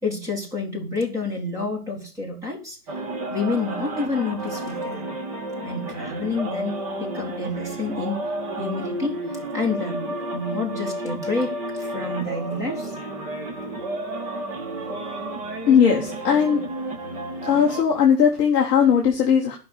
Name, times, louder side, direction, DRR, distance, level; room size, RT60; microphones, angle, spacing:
voice 1, 0.0-2.8 3.3-5.1 5.6-8.2 8.6-9.2 9.5-13.0, left 3 dB, 5° right, 0 dB, 2.2 m, -29 dB
sound 1, 2.9-17.8, right 1 dB, 25° right, 1.9 m, -31 dB
voice 2, 15.7-16.6 17.4-19.6, left 7 dB, 15° left, -2 dB, 1.1 m, -18 dB
11.0 x 5.8 x 8.3 m, 0.34 s
hypercardioid pair, 150°, 47 cm